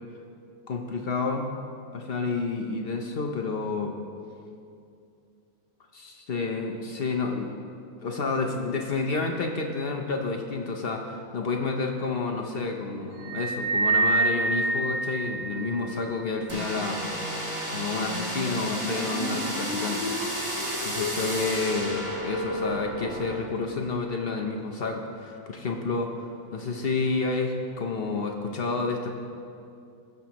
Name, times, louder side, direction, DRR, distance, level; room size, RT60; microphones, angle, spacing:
voice 1, 0.7-1.5 1.9-4.0 5.9-7.5 8.0-17.4 17.7-20.0 20.4-29.1, left 4 dB, 55° left, 2 dB, 0.7 m, -30 dB
sound 1, 13.2-15.9, right 3 dB, 55° right, 0.4 m, -26 dB
sound 2, 16.5-23.4, equal, 20° right, 1.6 m, -31 dB
18.0 x 6.9 x 2.9 m, 2.5 s
omnidirectional pair, 1.6 m